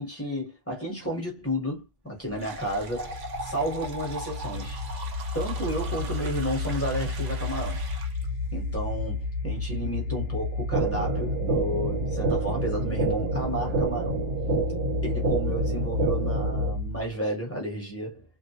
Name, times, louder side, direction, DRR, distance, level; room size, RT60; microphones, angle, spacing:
voice 1, 0.0-4.8 5.3-7.8 8.5-14.3 15.0-18.2, equal, 15° left, 0.9 m, -32 dB
sound 1, 2.2-17.1, left 2 dB, 65° left, 0.8 m, -32 dB
sound 2, 2.3-8.3, right 2 dB, 50° right, 0.6 m, -40 dB
sound 3, 10.7-16.7, right 3 dB, 80° right, 0.9 m, -28 dB
2.3 x 2.1 x 2.7 m
omnidirectional pair, 1.2 m